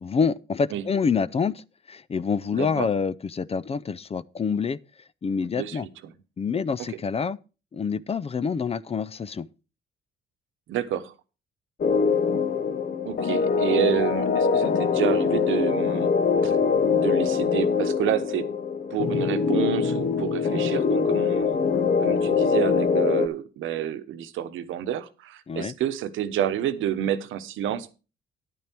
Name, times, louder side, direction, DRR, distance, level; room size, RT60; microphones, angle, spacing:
voice 1, 0.0-4.8 5.2-5.9 6.4-7.4 7.7-9.5 25.5-25.7, left 5 dB, 30° left, 0.5 m, -27 dB
voice 2, 2.5-2.9 5.4-6.1 10.7-11.1 13.0-16.1 16.4-16.6 17.0-18.5 18.9-21.6 22.0-28.0, right 10 dB, 85° right, 1.1 m, -29 dB
sound 1, 11.8-23.3, left 5 dB, 45° left, 1.0 m, -23 dB
10.5 x 9.3 x 4.4 m
cardioid pair, 90°, 20 cm